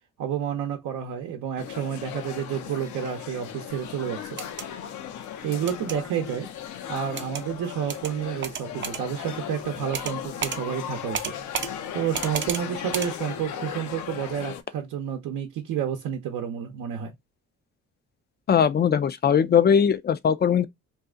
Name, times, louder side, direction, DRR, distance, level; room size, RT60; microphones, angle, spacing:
voice 1, 0.2-4.4 5.4-6.5 6.9-11.3 11.9-17.1, right 9 dB, 80° right, 0.7 m, -30 dB
sound 1, 1.6-14.6, left 9 dB, 75° left, 0.6 m, -37 dB
sound 2, 4.3-4.7 5.7-6.0 7.2-7.4 7.9-8.1 8.4-9.0 9.9-10.2 10.4-10.6 11.1-11.7 12.1-12.6 12.9-13.1, right 7 dB, 40° right, 0.5 m, -31 dB
voice 2, 18.5-20.7, left 7 dB, 35° left, 0.4 m, -20 dB
2.7 x 2.4 x 3.6 m
cardioid pair, 90°, 30 cm